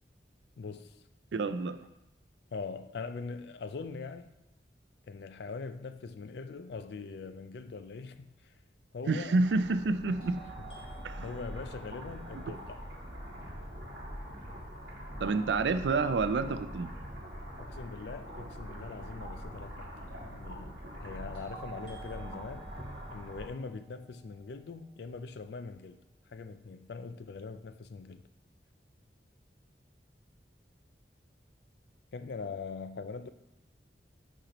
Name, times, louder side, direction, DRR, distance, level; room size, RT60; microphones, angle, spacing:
voice 1, 0.6-1.0 2.5-4.3 5.1-8.5 8.9-9.4 11.2-12.8 17.6-19.9 20.2-22.7 23.1-26.0 26.3-28.2 32.1-33.3, left 4 dB, 70° left, 0.4 m, -42 dB
voice 2, 1.3-1.8 9.1-10.4 11.0-11.3 12.3-12.4 15.2-16.9, right 3 dB, 80° right, 0.4 m, -29 dB
sound 1, 8.2-8.3 10.2-14.1 21.3-25.4, right 7 dB, 35° left, 1.9 m, -54 dB
sound 2, 9.3-23.5, equal, 60° right, 1.5 m, -44 dB
10.0 x 4.3 x 3.0 m
head